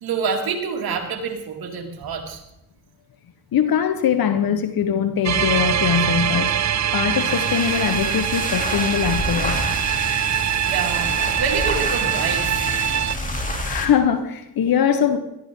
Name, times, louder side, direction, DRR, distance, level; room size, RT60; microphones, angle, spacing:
voice 1, 0.0-2.4 10.7-11.1 11.4-12.6, right 5 dB, 85° right, 2 dB, 2.5 m, -27 dB
voice 2, 3.5-6.6 6.9-9.6 13.6-15.2, left 8 dB, 75° left, 9 dB, 1.2 m, -21 dB
sound 1, 5.2-13.2, right 10 dB, 50° right, 0.7 m, -23 dB
sound 2, 6.9-14.0, left 1 dB, 20° left, 3.0 m, -29 dB
18.5 x 13.0 x 3.8 m, 0.87 s
supercardioid pair, 50°, 36 cm